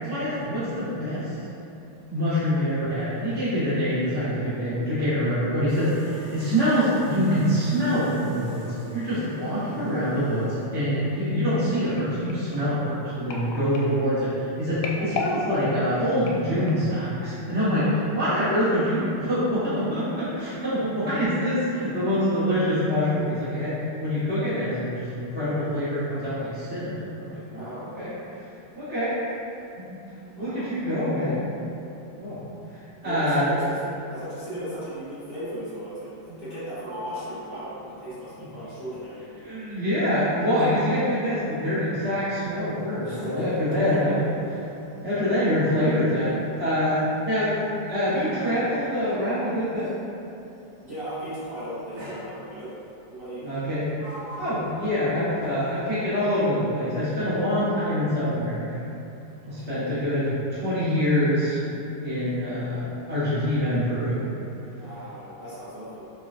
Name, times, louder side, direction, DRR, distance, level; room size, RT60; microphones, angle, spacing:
voice 1, 0.0-1.3 2.1-28.1 28.7-29.1 29.8-30.0 30.4-31.4 32.2-32.4 32.7-33.5 36.3-36.4 39.4-44.3 45.0-47.6 47.9-49.9 53.4-53.9 54.4-58.8 59.5-61.6 62.0-64.2, equal, 10° right, -14 dB, 0.5 m, -25 dB
sound 1, 5.7-10.7, left 1 dB, 40° left, 1.5 m, -47 dB
sound 2, 12.0-17.0 17.6-17.8 18.1-18.2, left 3 dB, 80° left, 1.4 m, -35 dB
voice 2, 27.5-27.9 30.2-30.7 33.0-39.2 43.0-44.1 50.8-52.7 53.1-53.4 59.4-59.9 64.8-66.1, equal, 40° right, -15 dB, 0.8 m, -37 dB
Sliding door, 36.5-39.7 40.0-50.1 51.0-51.3 52.0-52.9 53.5-56.0, equal, 65° right, 1.5 m, -45 dB
4.8 x 2.3 x 2.6 m, 2.7 s
omnidirectional pair, 2.4 m